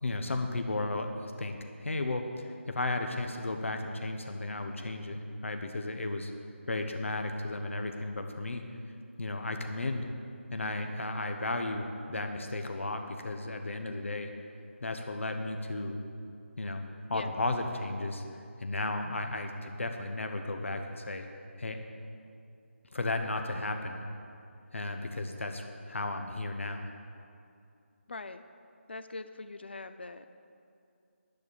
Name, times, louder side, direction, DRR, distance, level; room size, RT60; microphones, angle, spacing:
voice 1, 0.0-6.3 6.7-8.6 9.2-10.1 10.5-14.3 14.8-16.0 16.6-16.8 17.1-18.2 18.6-21.3 21.6-21.8 22.9-24.0 24.7-26.9, left 2 dB, 70° left, 5 dB, 1.1 m, -34 dB
voice 2, 28.1-28.4 28.9-30.2, left 3 dB, 55° left, 10 dB, 0.5 m, -42 dB
10.5 x 6.6 x 8.7 m, 2.5 s
figure-of-eight pair, 170°, 7 cm